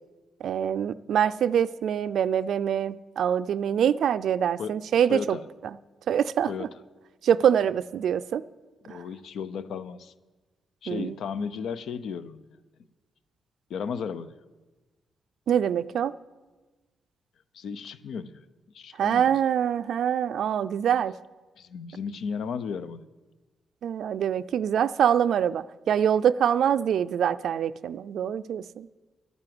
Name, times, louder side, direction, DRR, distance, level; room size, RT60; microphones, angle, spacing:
voice 1, 0.4-5.4 6.1-6.5 7.2-8.4 8.9-9.0 10.9-11.1 15.5-16.1 19.0-21.1 23.8-28.9, right 9 dB, 70° right, 15 dB, 0.4 m, -24 dB
voice 2, 5.1-5.4 6.5-6.7 8.8-10.1 10.8-12.4 13.7-14.4 17.5-18.4 18.7-19.4 21.6-23.0, left 6 dB, 75° left, 14 dB, 0.6 m, -34 dB
11.0 x 9.7 x 7.7 m, 1.2 s
cardioid pair, 135°, 0 cm